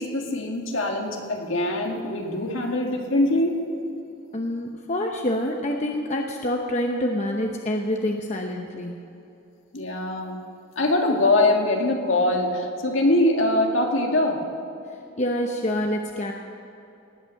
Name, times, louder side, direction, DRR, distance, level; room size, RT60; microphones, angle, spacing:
voice 1, 0.0-3.7 9.7-10.4 10.8-14.4, left 2 dB, 65° left, 2 dB, 1.9 m, -23 dB
voice 2, 4.3-9.0 15.2-16.3, left 1 dB, 30° left, 2 dB, 0.8 m, -27 dB
18.5 x 9.0 x 6.5 m, 2.8 s
head